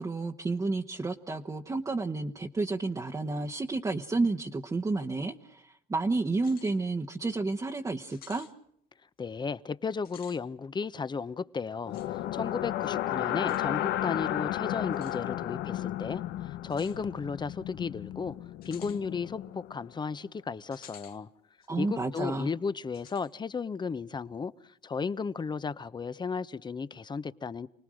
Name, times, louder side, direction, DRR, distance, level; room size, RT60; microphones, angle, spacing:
voice 1, 0.0-8.5 21.7-22.5, right 3 dB, 20° right, 1.2 m, -31 dB
sound 1, 6.3-6.8 7.2-7.3 8.1-8.5 10.0-10.4 11.9-12.1 13.5-13.6 14.9-15.2 16.7-17.0 18.6-19.0 20.7-21.2 21.6-21.7 22.9-23.3, left 9 dB, 60° left, 2.9 m, -52 dB
voice 2, 9.2-18.4 18.6-21.3 21.8-24.5 24.8-27.7, left 5 dB, 25° left, 0.9 m, -34 dB
sound 2, 11.8-19.9, left 13 dB, 85° left, 0.9 m, -33 dB
29.5 x 19.5 x 6.4 m
cardioid pair, 110°, 17 cm